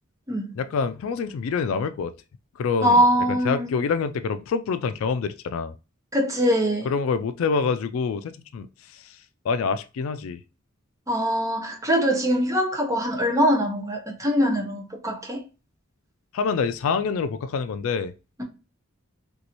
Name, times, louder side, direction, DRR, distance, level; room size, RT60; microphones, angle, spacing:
voice 1, 0.6-2.1 2.6-3.0 3.3-5.7 6.8-8.7 8.9-9.0 9.4-10.4 16.3-18.1, left 5 dB, 70° left, 0.3 m, -26 dB
voice 2, 2.8-3.7 6.1-6.9 11.1-15.4, equal, 15° right, 0.7 m, -22 dB
3.0 x 2.7 x 2.9 m
head